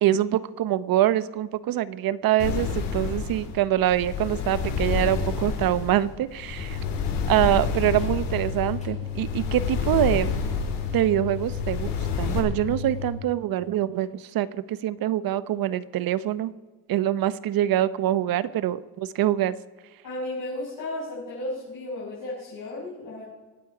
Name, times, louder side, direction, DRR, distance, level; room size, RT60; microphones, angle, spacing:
voice 1, 0.0-6.8 7.3-10.4 10.9-16.5 16.9-19.5, right 12 dB, 55° right, 15 dB, 0.7 m, -24 dB
sound 1, 2.4-12.4, left 5 dB, 90° left, 3.9 m, -29 dB
sound 2, 6.6-13.1, left 7 dB, 15° left, 5.6 m, -33 dB
voice 2, 20.0-23.2, left 1 dB, 50° left, -9 dB, 6.1 m, -34 dB
24.5 x 9.2 x 4.9 m, 1.3 s
cardioid pair, 115°, 41 cm